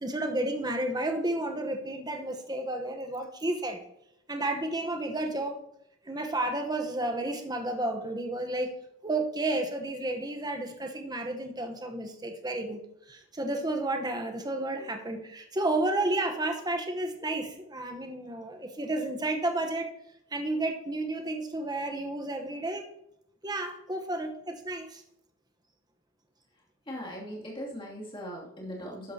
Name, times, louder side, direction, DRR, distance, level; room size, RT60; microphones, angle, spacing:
voice 1, 0.0-3.8 4.3-5.6 6.0-8.8 9.0-12.8 13.1-19.9 20.3-22.8 23.4-25.0, right 2 dB, 20° right, 4 dB, 1.0 m, -31 dB
voice 2, 26.9-29.1, equal, 25° left, -4 dB, 2.6 m, -39 dB
12.0 x 9.9 x 2.8 m, 0.78 s
head